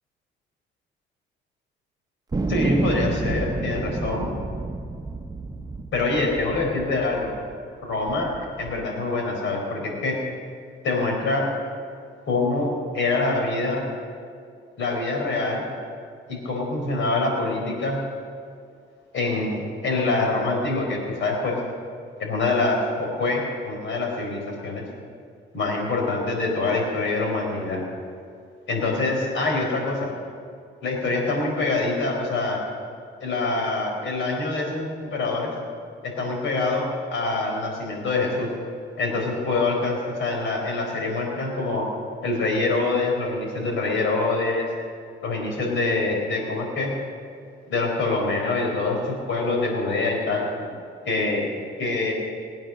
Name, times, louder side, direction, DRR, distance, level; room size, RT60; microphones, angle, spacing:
sound 1, 2.3-7.5 8.1-8.9, right 3 dB, 20° right, 0.9 m, -29 dB
voice 1, 2.5-4.3 5.9-7.3 7.8-8.3 8.6-10.2 10.8-11.5 12.3-13.8 14.8-15.6 16.3-18.0 19.1-21.6 22.2-24.8 25.5-27.8 28.7-30.1 30.8-32.6 33.2-35.5 36.0-38.5 39.0-41.9 42.2-44.7 45.2-47.0 47.7-50.5 51.0-51.5 51.8-52.1, left 3 dB, 70° left, 1 dB, 4.3 m, -25 dB
20.5 x 8.9 x 6.4 m, 2.3 s
cardioid pair, 90°, 20 cm